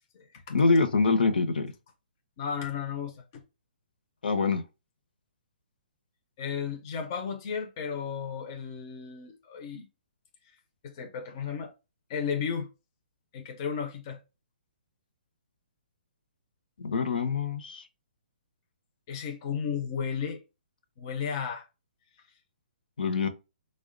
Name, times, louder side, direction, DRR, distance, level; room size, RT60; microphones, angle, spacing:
voice 1, 0.5-1.7 4.2-4.6 16.8-17.8 23.0-23.3, left 4 dB, 75° left, 0.6 m, -25 dB
voice 2, 2.4-3.4 6.4-9.9 10.8-11.7 12.1-12.7 13.3-14.2 19.1-20.4 21.0-21.7, left 7 dB, 25° left, 0.4 m, -34 dB
3.4 x 2.1 x 3.6 m
hypercardioid pair, 175°, 5 cm